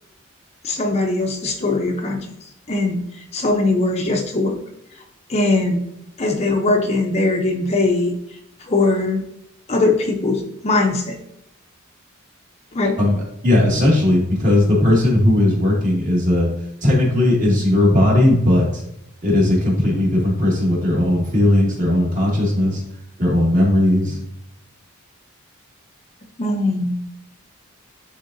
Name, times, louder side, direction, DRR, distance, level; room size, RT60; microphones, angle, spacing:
voice 1, 0.6-2.3 2.7-4.6 5.3-5.8 6.2-8.2 8.6-9.2 9.7-11.2 12.7-13.0 26.4-27.0, left 2 dB, 30° left, 2 dB, 0.6 m, -20 dB
voice 2, 13.4-16.5 16.8-18.8 19.2-22.8 23.2-24.2, left 1 dB, 35° right, -4 dB, 2.1 m, -17 dB
10.0 x 3.7 x 2.6 m, 0.82 s
head